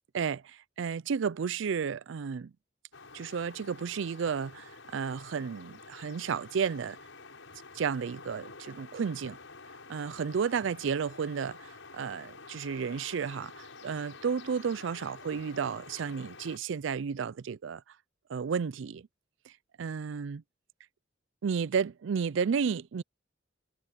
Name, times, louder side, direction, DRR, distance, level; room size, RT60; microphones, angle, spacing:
voice 1, 0.1-2.5 3.1-7.0 7.7-9.4 9.9-17.8 18.3-19.1 19.8-20.4 21.4-23.0, right 6 dB, 70° right, 0.4 m, -32 dB
sound 1, 2.9-16.6, left 4 dB, 80° left, 6.9 m, -49 dB
head